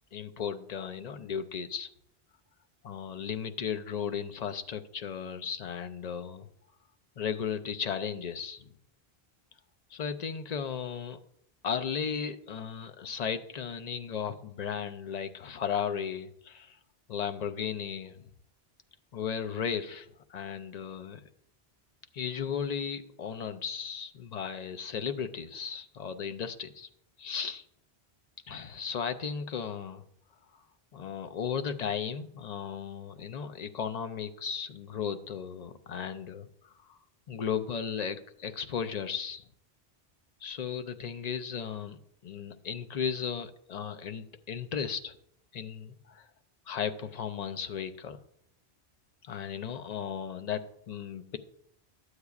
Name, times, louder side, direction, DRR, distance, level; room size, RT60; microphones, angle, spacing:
voice 1, 0.1-1.9 2.8-6.5 7.2-8.7 9.9-11.2 11.6-16.8 17.1-18.3 19.1-21.2 22.1-26.9 27.2-27.6 28.5-30.0 30.5-30.6 30.9-36.5 36.9-37.0 37.3-39.4 40.4-45.2 45.5-46.3 46.7-48.2 49.2-51.4, left 7 dB, 55° left, 9 dB, 0.5 m, -35 dB
13.0 x 8.0 x 2.4 m, 0.72 s
omnidirectional pair, 1.0 m